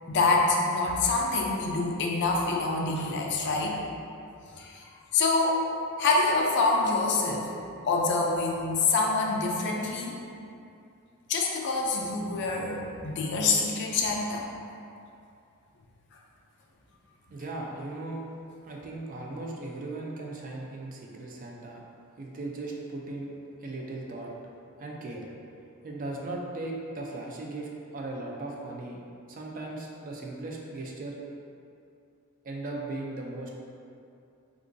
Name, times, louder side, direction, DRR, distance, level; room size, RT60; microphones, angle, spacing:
voice 1, 0.1-3.8 4.6-5.6 6.0-7.5 7.8-10.2 11.3-14.5, left 3 dB, 50° left, -1 dB, 0.4 m, -26 dB
voice 2, 17.3-18.3 18.6-21.8 22.2-23.3 23.6-24.3 24.8-25.2 25.8-29.0 29.3-31.2 32.4-33.5, right 2 dB, 40° right, -1 dB, 0.3 m, -37 dB
3.6 x 2.4 x 2.5 m, 2.5 s
head